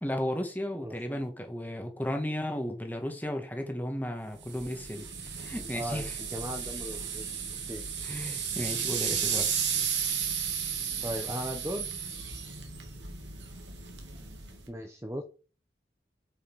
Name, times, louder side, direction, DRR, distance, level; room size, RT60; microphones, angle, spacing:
voice 1, 0.0-5.1 5.4-6.1 8.0-9.5, left 1 dB, 10° left, 1.6 m, -34 dB
voice 2, 0.8-1.2 5.7-7.4 7.7-7.8 11.0-11.9 14.7-15.2, equal, 15° right, 0.8 m, -37 dB
sound 1, 4.4-14.7, right 7 dB, 90° right, 2.4 m, -34 dB
7.8 x 7.1 x 4.7 m
head